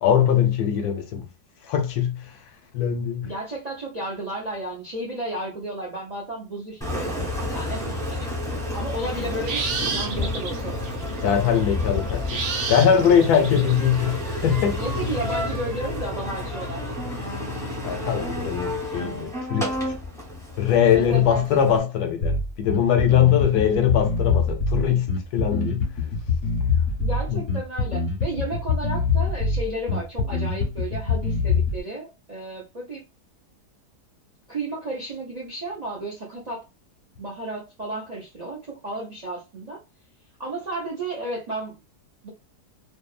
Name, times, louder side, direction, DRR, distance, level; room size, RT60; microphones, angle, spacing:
voice 1, 0.0-1.3 1.6-2.4 2.7-3.3 11.2-12.4 12.7-14.8 17.8-19.9 20.6-25.9 27.3-27.4, left 8 dB, 75° left, 1.0 m, -21 dB
voice 2, 3.2-8.3 8.7-10.9 13.3-13.5 14.8-16.9 20.8-21.8 27.0-33.0 34.5-36.7 37.2-39.8 40.4-41.8 42.2-42.3, right 2 dB, 45° right, 0.5 m, -33 dB
Engine, 6.8-21.8, left 2 dB, 5° left, 0.8 m, -30 dB
sound 1, 9.2-15.6, right 4 dB, 80° right, 1.2 m, -32 dB
Bass guitar, 22.2-31.8, left 4 dB, 45° left, 0.8 m, -24 dB
2.7 x 2.4 x 2.3 m
omnidirectional pair, 1.8 m